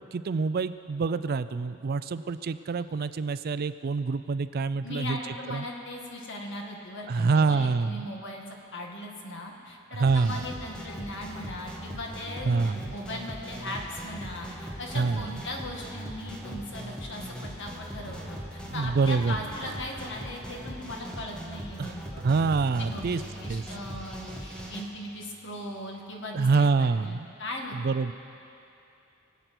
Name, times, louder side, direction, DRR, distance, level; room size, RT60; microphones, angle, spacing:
voice 1, 0.1-5.2 5.5-5.6 7.1-8.1 9.9-10.5 12.4-12.8 14.9-15.3 18.7-19.4 21.8-22.0 22.2-23.2 23.5-23.6 26.3-27.3 27.7-28.1, right 4 dB, 45° right, 13 dB, 0.4 m, -26 dB
voice 2, 4.8-22.2 22.8-23.1 23.4-28.0, left 1 dB, 55° left, 0 dB, 2.0 m, -39 dB
sound 1, 10.1-24.8, equal, 5° left, 1.7 m, -40 dB
sound 2, 17.0-17.1 18.1-19.2 19.6-20.9 22.2-26.1, right 1 dB, 80° right, 1.6 m, -47 dB
23.5 x 8.1 x 6.0 m, 2.7 s
head